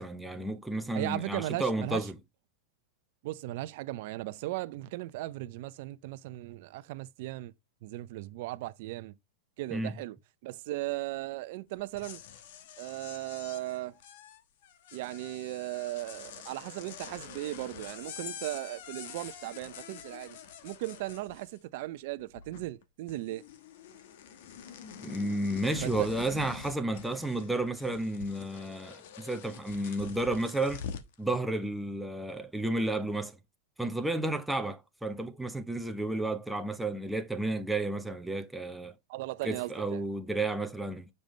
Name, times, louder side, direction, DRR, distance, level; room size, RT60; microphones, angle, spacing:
voice 1, 0.0-2.1 9.7-10.0 25.0-30.8 31.2-33.4 33.8-38.9 39.4-41.1, right 2 dB, 5° right, 0.8 m, -32 dB
voice 2, 0.9-2.1 3.2-7.5 7.8-9.1 9.6-10.2 10.4-12.2 12.8-14.0 14.9-20.4 20.6-23.4 25.8-26.1 39.1-40.0, right 17 dB, 55° right, 0.5 m, -37 dB
sound 1, 11.8-21.8 22.1-22.8 23.1-31.1, left 8 dB, 65° left, 1.1 m, -46 dB
7.1 x 5.3 x 3.1 m
supercardioid pair, 145°, 0 cm